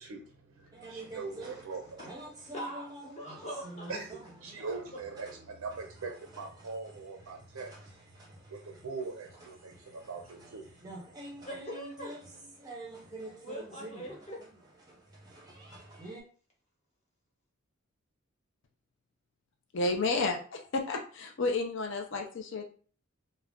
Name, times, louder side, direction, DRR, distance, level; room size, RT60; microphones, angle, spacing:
voice 1, 0.0-2.2 3.9-8.0 8.5-10.7 11.2-11.3, right 4 dB, 80° right, 2 dB, 0.5 m, -42 dB
sound 1, 0.7-16.2, right 1 dB, 20° right, 0.6 m, -48 dB
voice 2, 2.5-3.9 4.5-4.7 11.4-12.1 13.4-14.4, equal, 30° left, -2 dB, 0.8 m, -42 dB
voice 3, 19.7-22.6, left 3 dB, 55° left, 3 dB, 0.4 m, -31 dB
2.4 x 2.1 x 3.5 m, 0.41 s
head